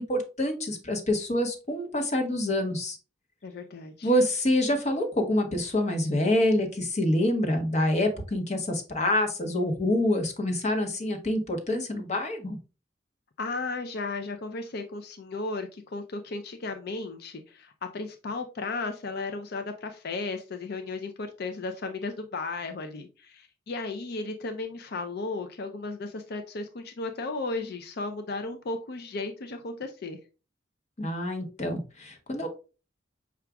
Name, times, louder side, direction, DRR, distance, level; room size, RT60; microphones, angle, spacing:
voice 1, 0.0-3.0 4.0-12.6 31.0-32.5, left 1 dB, 40° left, 5 dB, 0.9 m, -26 dB
voice 2, 3.4-4.1 13.4-30.2, left 3 dB, 60° left, 6 dB, 0.5 m, -35 dB
5.8 x 2.4 x 3.3 m, 0.33 s
head